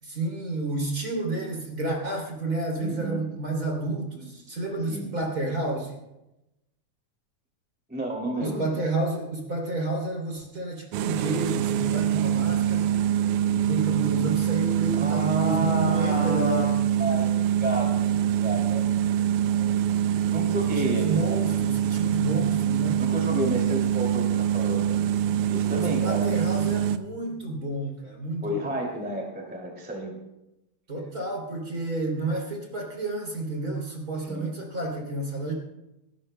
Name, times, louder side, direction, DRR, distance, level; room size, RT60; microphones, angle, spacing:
voice 1, 0.0-6.0 8.4-12.9 13.5-16.7 20.7-23.0 25.8-28.7 30.9-35.5, right 2 dB, 30° right, 0 dB, 3.2 m, -30 dB
voice 2, 2.8-3.2 4.9-5.1 7.9-8.8 15.0-16.7 17.0-17.3 17.6-19.0 19.6-19.7 20.3-21.4 23.0-25.0 25.5-26.3 28.4-30.2 34.2-34.5, equal, 5° right, -1 dB, 1.8 m, -31 dB
sound 1, 10.9-27.0, right 10 dB, 90° right, 2.2 m, -24 dB
27.0 x 12.5 x 2.2 m, 0.92 s
omnidirectional pair, 3.6 m